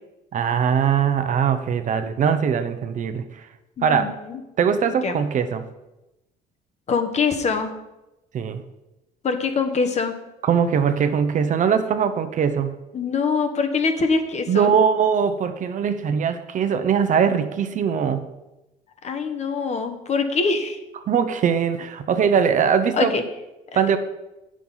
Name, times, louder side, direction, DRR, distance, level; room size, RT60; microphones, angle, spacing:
voice 1, 0.3-3.5 3.8-4.2 4.6-5.6 8.3-8.6 10.4-12.7 14.5-18.3 21.1-23.1 23.8-24.0, right 7 dB, 50° right, 9 dB, 0.8 m, -21 dB
voice 2, 3.8-4.4 5.0-5.2 6.9-7.7 9.2-10.1 12.9-14.7 19.0-20.8 22.9-23.2, left 4 dB, 40° left, 6 dB, 1.1 m, -23 dB
8.7 x 6.2 x 5.5 m, 0.98 s
cardioid pair, 110°, 17 cm